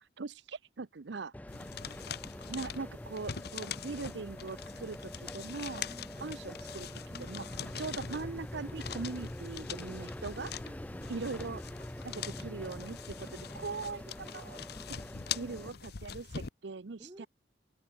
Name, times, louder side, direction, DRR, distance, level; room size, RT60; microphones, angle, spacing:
voice 1, 0.0-1.3 2.5-5.9 6.2-6.9 7.3-7.4 7.8-10.5 11.1-11.6 12.0-14.6 15.3-17.3, right 4 dB, 65° right, 0.7 m, -41 dB
sound 1, 1.3-15.7, left 1 dB, 10° left, 0.5 m, -44 dB
sound 2, 1.5-16.5, left 8 dB, 60° left, 0.8 m, -44 dB
voice 2, 1.8-2.3 5.7-6.3 7.1-7.6 9.9-10.0 10.3-11.1 13.1-13.6 17.0-17.3, right 1 dB, 20° right, 1.2 m, -54 dB
head